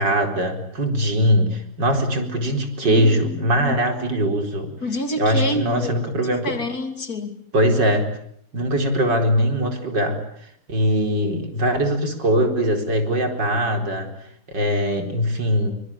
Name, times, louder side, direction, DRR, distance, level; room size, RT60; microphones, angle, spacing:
voice 1, 0.0-4.7 5.2-6.5 7.5-8.1 8.5-10.2 10.7-14.1 14.5-15.7, equal, 80° right, 4 dB, 5.0 m, -21 dB
voice 2, 2.9-3.7 4.8-6.0 6.4-7.4, left 1 dB, 55° left, 7 dB, 3.4 m, -28 dB
25.5 x 24.0 x 8.8 m, 0.67 s
omnidirectional pair, 1.9 m